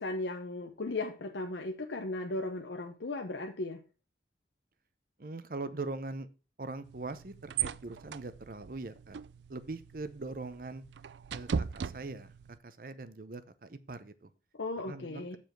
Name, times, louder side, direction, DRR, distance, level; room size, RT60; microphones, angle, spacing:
voice 1, 0.0-3.8 14.6-15.4, left 2 dB, 85° left, 4 dB, 0.8 m, -36 dB
voice 2, 5.2-6.3 6.6-9.2 9.5-10.8 11.3-12.3 12.6-14.3 14.9-15.3, right 3 dB, 50° right, 13 dB, 0.7 m, -41 dB
sound 1, 6.8-12.6, right 7 dB, 75° right, 0.4 m, -39 dB
7.1 x 4.9 x 5.9 m, 0.34 s
head